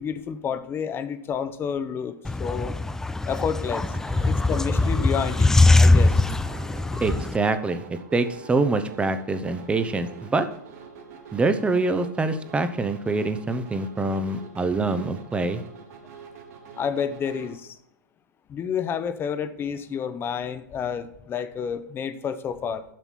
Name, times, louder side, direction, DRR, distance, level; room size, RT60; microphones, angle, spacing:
voice 1, 0.0-2.8 3.3-5.5 5.8-6.3 16.8-17.7 18.5-22.8, left 7 dB, 20° left, 12 dB, 0.8 m, -30 dB
sound 1, 2.2-7.4, left 2 dB, 5° left, 0.3 m, -21 dB
sound 2, 3.8-17.6, right 5 dB, 55° right, 2.2 m, -46 dB
voice 2, 7.0-10.5 11.3-15.6, right 3 dB, 10° right, 10 dB, 0.8 m, -25 dB
7.5 x 5.8 x 7.2 m, 0.77 s
hypercardioid pair, 115°, 10 cm